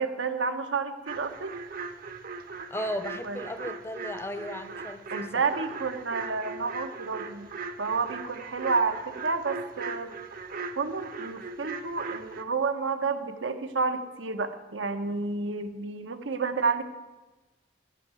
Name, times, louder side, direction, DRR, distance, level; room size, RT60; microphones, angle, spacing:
voice 1, 0.0-1.5 3.2-3.4 5.1-7.5 7.8-10.1 10.8-16.8, right 4 dB, 90° right, 8 dB, 0.9 m, -30 dB
sound 1, 1.1-12.4, right 4 dB, 50° right, 0.8 m, -39 dB
voice 2, 2.7-5.3, left 1 dB, 15° left, 10 dB, 0.7 m, -35 dB
11.5 x 5.7 x 8.2 m, 1.1 s
head